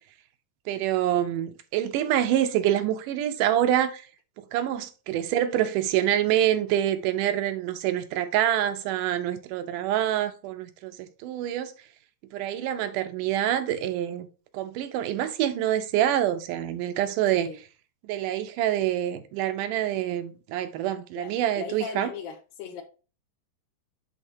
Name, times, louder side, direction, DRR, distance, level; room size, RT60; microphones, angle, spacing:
voice 1, 0.7-4.0 4.5-11.7 12.3-14.3 14.5-17.5 18.1-22.1, right 11 dB, 80° right, 2.1 m, -26 dB
voice 2, 21.2-22.8, left 8 dB, 85° left, 3.0 m, -38 dB
10.5 x 3.6 x 2.7 m
omnidirectional pair, 3.9 m